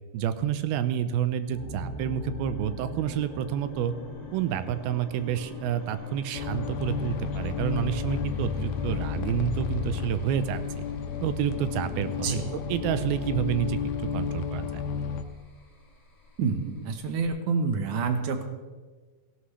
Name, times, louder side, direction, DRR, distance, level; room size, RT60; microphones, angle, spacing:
voice 1, 0.1-3.9 4.3-10.8 11.2-13.8 14.1-14.8, right 10 dB, 90° right, 12 dB, 2.5 m, -29 dB
sound 1, 1.5-17.3, left 1 dB, 25° left, 1.6 m, -44 dB
sound 2, 6.3-15.2, left 7 dB, 85° left, 2.6 m, -32 dB
voice 2, 16.4-18.5, right 5 dB, 65° right, 6 dB, 2.2 m, -28 dB
17.5 x 15.5 x 3.3 m, 1.4 s
omnidirectional pair, 4.4 m